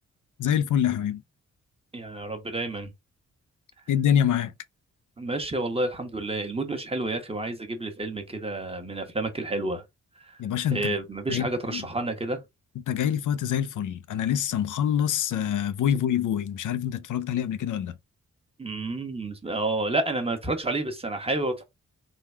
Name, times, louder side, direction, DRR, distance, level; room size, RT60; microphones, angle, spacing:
voice 1, 0.4-1.2 3.9-4.5 10.4-10.9 11.3-11.9 12.9-17.9, left 9 dB, 85° left, 0.5 m, -26 dB
voice 2, 1.9-2.9 5.2-9.8 10.2-10.4 10.7-12.4 18.6-21.6, right 2 dB, 20° right, 1.0 m, -30 dB
3.7 x 2.3 x 4.4 m
wide cardioid pair, 115°, 30 cm